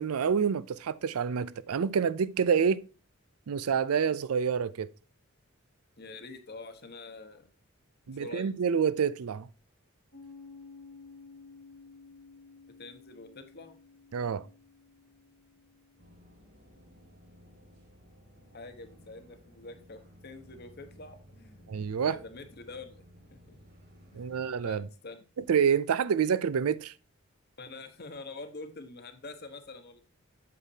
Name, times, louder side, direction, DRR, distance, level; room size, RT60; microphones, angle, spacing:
voice 1, 0.0-2.8 3.5-4.9 8.1-9.5 14.1-14.4 21.7-22.2 24.1-24.9 25.5-26.9, right 7 dB, 85° right, 0.4 m, -27 dB
voice 2, 6.0-7.5 8.0-8.5 12.8-13.8 18.5-21.8 22.0-23.0 23.3-23.6 24.1-25.2 27.6-30.0, left 3 dB, 45° left, 1.1 m, -46 dB
Piano, 10.1-17.3, left 4 dB, 70° left, 2.1 m, -54 dB
sound 1, 16.0-24.5, equal, 45° right, 4.0 m, -56 dB
8.4 x 7.4 x 2.8 m
head